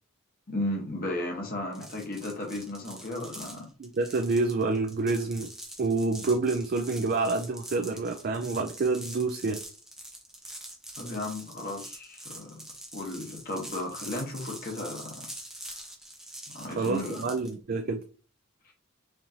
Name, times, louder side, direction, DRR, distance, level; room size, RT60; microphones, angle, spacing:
voice 1, 0.5-3.7 11.0-12.6 12.9-15.2 16.5-17.3 18.7-18.8, left 1 dB, 45° left, 0 dB, 1.0 m, -35 dB
sound 1, 1.7-17.5, right 1 dB, 5° right, 0.6 m, -44 dB
voice 2, 3.8-5.5 5.8-9.6 16.8-18.0, right 3 dB, 45° right, 6 dB, 0.3 m, -28 dB
4.4 x 2.5 x 2.7 m, 0.38 s
head